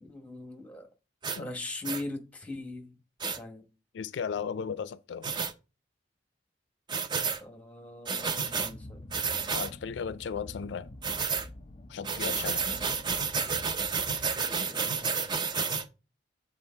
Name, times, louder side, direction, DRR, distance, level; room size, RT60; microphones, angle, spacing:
voice 1, 0.0-0.9 1.4-2.9 3.2-3.7 7.4-9.0 14.1-15.2, left 2 dB, 10° left, 1.1 m, -41 dB
sound 1, 1.2-1.4 1.8-2.0 3.2-3.4 5.2-5.5 6.9-7.4 8.1-8.7 9.1-9.7 11.0-11.5 12.0-15.8, right 5 dB, 25° right, 0.5 m, -30 dB
voice 2, 3.9-5.3 9.5-10.9 11.9-12.7, left 6 dB, 70° left, 0.3 m, -35 dB
sound 2, 8.3-14.8, left 1 dB, 30° left, 0.7 m, -47 dB
8.2 x 3.7 x 4.4 m
head